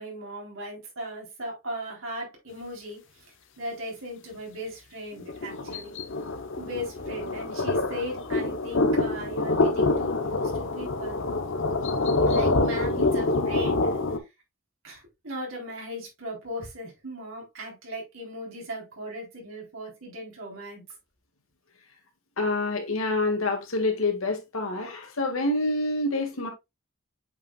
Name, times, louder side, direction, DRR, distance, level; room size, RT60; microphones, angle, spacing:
voice 1, 0.0-3.0 3.6-5.9 6.6-11.2 12.3-13.9 14.8-20.8, equal, 70° right, 3.9 m, -37 dB
sound 1, 5.2-14.2, left 2 dB, 65° left, 0.9 m, -26 dB
voice 2, 22.4-26.5, left 2 dB, 85° left, 2.0 m, -27 dB
8.0 x 5.4 x 2.4 m
head